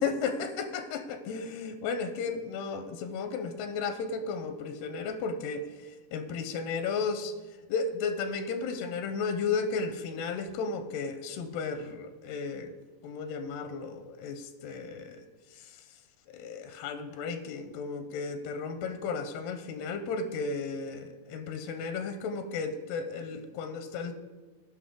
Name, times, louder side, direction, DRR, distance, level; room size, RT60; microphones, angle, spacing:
voice 1, 0.0-5.6 6.1-7.3 7.7-12.7 13.0-15.2 15.6-15.7 16.3-24.1, left 5 dB, 90° left, 8 dB, 2.7 m, -34 dB
17.5 x 5.8 x 3.7 m, 1.2 s
omnidirectional pair, 4.5 m